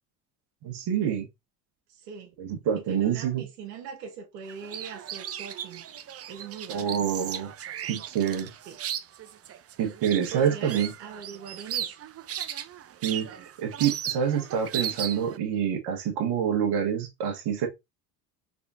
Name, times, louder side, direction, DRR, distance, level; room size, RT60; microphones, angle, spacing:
voice 1, 0.6-1.3 2.4-3.4 6.7-7.5 7.9-8.5 9.8-10.9 13.0-17.7, right 8 dB, 55° right, 1.4 m, -27 dB
voice 2, 1.9-2.3 2.7-5.8 6.3-7.1 8.7-8.8 10.3-12.0, right 6 dB, 85° right, 1.3 m, -41 dB
sound 1, 4.5-15.4, right 10 dB, 30° right, 0.6 m, -36 dB
4.2 x 3.5 x 2.6 m
hypercardioid pair, 70°, 47 cm